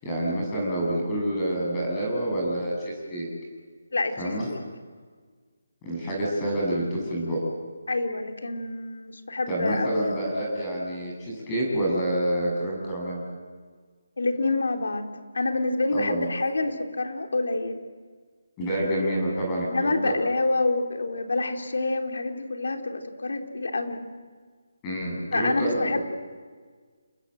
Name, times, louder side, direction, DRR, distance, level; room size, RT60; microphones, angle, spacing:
voice 1, 0.0-3.3 4.2-4.5 5.8-7.4 9.5-13.2 15.9-16.3 18.6-20.2 24.8-26.0, right 1 dB, 15° left, -3 dB, 7.6 m, -27 dB
voice 2, 3.9-4.6 7.9-10.1 14.2-15.1 15.3-17.8 19.7-24.0 25.3-26.0, left 2 dB, 80° left, 3 dB, 4.0 m, -27 dB
30.0 x 21.5 x 7.9 m, 1.5 s
hypercardioid pair, 170°, 0 cm